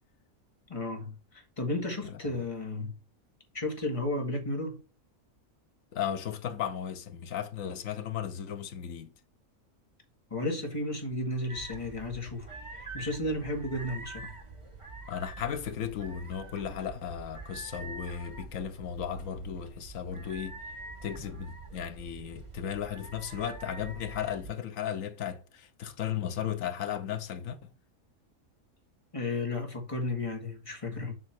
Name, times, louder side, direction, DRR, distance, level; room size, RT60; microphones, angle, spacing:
voice 1, 0.7-3.0 3.5-4.8 10.3-14.3 29.1-31.1, left 2 dB, 25° left, 1.7 m, -33 dB
voice 2, 2.0-2.5 5.9-9.1 15.0-20.6 21.0-27.7, left 9 dB, 70° left, 1.3 m, -35 dB
sound 1, 11.5-24.5, right 3 dB, 20° right, 1.4 m, -45 dB
7.6 x 3.1 x 5.9 m
omnidirectional pair, 1.5 m